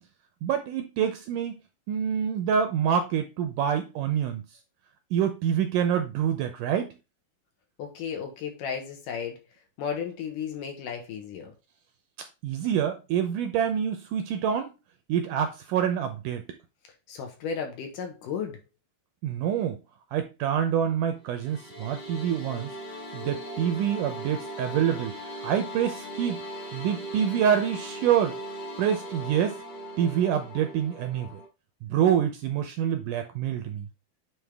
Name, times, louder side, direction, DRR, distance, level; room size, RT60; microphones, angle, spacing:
voice 1, 0.4-1.5 1.9-4.4 5.1-7.0 12.4-14.7 15.1-16.4 19.2-19.8 20.1-22.7 23.1-25.2 25.4-26.4 26.7-28.4 28.8-29.6 30.0-31.4 31.8-33.9, right 9 dB, 75° right, 2.0 m, -26 dB
voice 2, 7.8-9.4 9.8-11.5 17.1-18.6, left 7 dB, 70° left, 2.7 m, -34 dB
sound 1, 21.3-31.5, equal, 85° left, 4.9 m, -39 dB
9.0 x 3.6 x 3.5 m
omnidirectional pair, 4.3 m